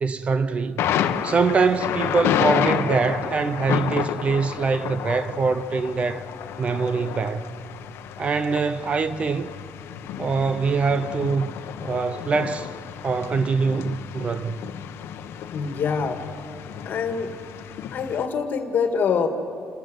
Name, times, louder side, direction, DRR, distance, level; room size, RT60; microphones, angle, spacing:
voice 1, 0.0-0.9 1.2-6.2 6.6-7.5 8.2-9.5 10.2-12.7 13.0-14.6, right 4 dB, 30° right, 0.5 m, -24 dB
Thunder, 0.8-18.2, left 9 dB, 70° left, 1.0 m, -30 dB
voice 2, 15.5-16.3 16.9-17.4 17.9-19.3, left 6 dB, 45° left, 1.8 m, -25 dB
28.5 x 14.5 x 7.8 m
cardioid pair, 155°, 4 cm